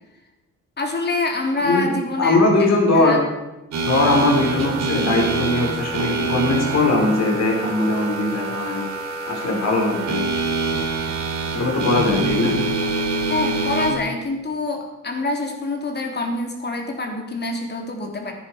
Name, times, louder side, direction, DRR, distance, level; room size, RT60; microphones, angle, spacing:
voice 1, 0.8-3.2 13.3-18.3, left 2 dB, 35° left, 2 dB, 2.9 m, -26 dB
voice 2, 2.2-3.2 3.8-8.9 9.3-10.3 11.5-12.5, left 2 dB, 60° left, -1 dB, 4.5 m, -20 dB
sound 1, 3.7-13.9, right 3 dB, 65° right, 3.0 m, -25 dB
14.5 x 10.0 x 4.9 m, 1.0 s
cardioid pair, 90°, 30 cm